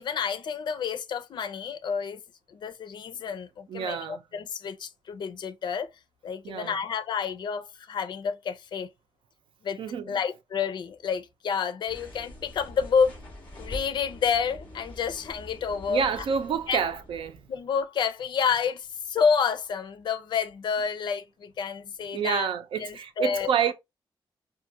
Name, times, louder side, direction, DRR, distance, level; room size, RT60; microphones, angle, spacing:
voice 1, 0.0-2.2 2.5-5.9 6.2-8.9 9.6-9.8 10.1-13.2 13.6-16.0 16.7-16.8 17.5-22.5 22.8-23.5, left 6 dB, 60° left, 0.6 m, -29 dB
voice 2, 3.7-4.2 6.4-6.7 9.8-10.2 15.9-17.4 22.1-23.7, right 7 dB, 85° right, 0.7 m, -28 dB
sound 1, 11.9-17.6, left 1 dB, 15° left, 2.4 m, -44 dB
5.1 x 2.5 x 2.8 m
wide cardioid pair, 175°, 9 cm